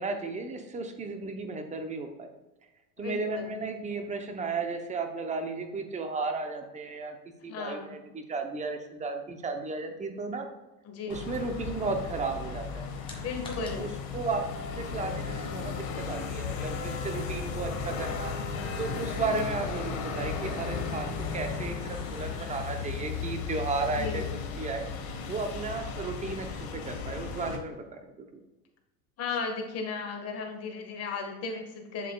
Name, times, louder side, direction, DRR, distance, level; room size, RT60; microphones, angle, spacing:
voice 1, 0.0-2.3 3.0-7.2 7.4-10.5 11.1-12.9 13.6-14.4 14.7-18.3 18.8-24.2 24.6-24.9 25.3-28.4, right 3 dB, 15° right, 6 dB, 0.8 m, -34 dB
voice 2, 3.0-3.6 7.4-8.0 10.8-11.2 13.2-13.9 19.2-19.4 24.0-24.3 29.2-32.1, left 4 dB, 35° left, 2 dB, 1.6 m, -35 dB
sound 1, 11.1-27.6, left 5 dB, 65° left, 1.6 m, -35 dB
sound 2, 12.3-23.2, left 2 dB, 10° left, 1.6 m, -55 dB
7.5 x 7.3 x 2.3 m, 1.1 s
supercardioid pair, 120°, 45 cm